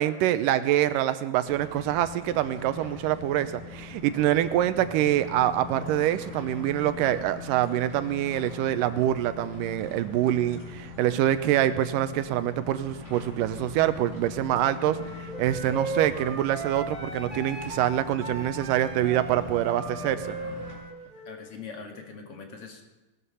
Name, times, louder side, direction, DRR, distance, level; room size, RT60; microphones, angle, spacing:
voice 1, 0.0-20.4, right 12 dB, 80° right, 12 dB, 2.3 m, -25 dB
sound 1, 1.4-20.7, left 4 dB, 30° left, 6.5 m, -42 dB
sound 2, 14.8-21.4, right 3 dB, 15° right, 2.2 m, -37 dB
voice 2, 21.2-22.8, left 5 dB, 45° left, 2 dB, 2.7 m, -42 dB
19.0 x 12.5 x 5.6 m, 1.1 s
omnidirectional pair, 3.8 m